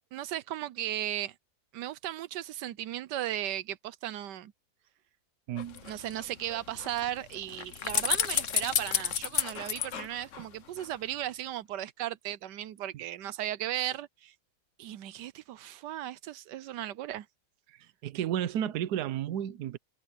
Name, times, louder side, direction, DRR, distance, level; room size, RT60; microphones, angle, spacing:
voice 1, 0.1-1.3 1.7-4.5 5.8-14.3 14.8-17.3, right 13 dB, 90° right, 1.3 m, -36 dB
voice 2, 5.5-5.9 12.9-13.0 17.7-19.8, right 10 dB, 70° right, 1.3 m, -33 dB
sound 1, 5.6-10.9 11.2-11.3, left 8 dB, 55° left, 1.2 m, -32 dB
omnidirectional pair, 1.8 m